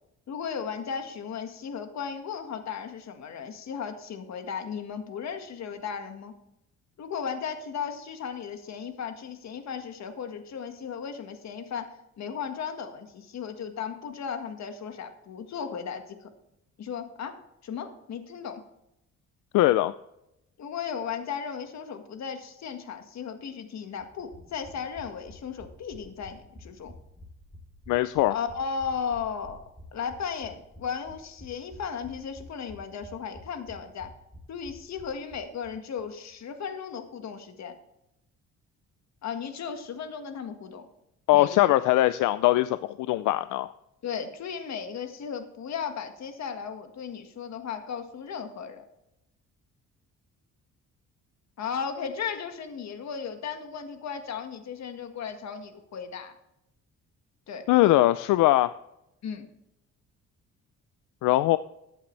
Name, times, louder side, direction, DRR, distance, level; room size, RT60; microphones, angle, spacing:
voice 1, 0.3-6.3 7.0-16.3 16.8-18.6 20.6-26.9 28.3-29.6 29.9-34.1 34.5-37.7 39.2-40.8 41.3-41.8 44.0-48.8 51.6-56.3 57.5-57.7 59.2-59.5, left 6 dB, 60° left, 7 dB, 1.7 m, -35 dB
voice 2, 19.5-19.9 27.9-28.3 41.3-43.7 57.7-58.7 61.2-61.6, left 16 dB, 85° left, 14 dB, 0.5 m, -21 dB
sound 1, 24.0-35.7 36.0-36.1 36.3-36.4, left 1 dB, ahead, 3.4 m, -50 dB
14.5 x 8.7 x 3.3 m, 0.84 s
cardioid pair, 90°, 30 cm